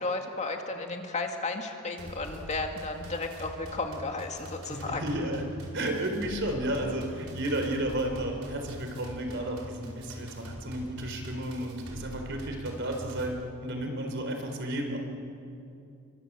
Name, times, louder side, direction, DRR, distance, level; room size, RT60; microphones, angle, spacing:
voice 1, 0.0-5.0, left 3 dB, 35° left, 3 dB, 2.2 m, -33 dB
sound 1, 2.0-13.3, equal, 90° right, 4.9 m, -44 dB
voice 2, 4.7-15.0, right 1 dB, 60° right, 3 dB, 4.1 m, -32 dB
28.5 x 24.0 x 7.6 m, 2.7 s
head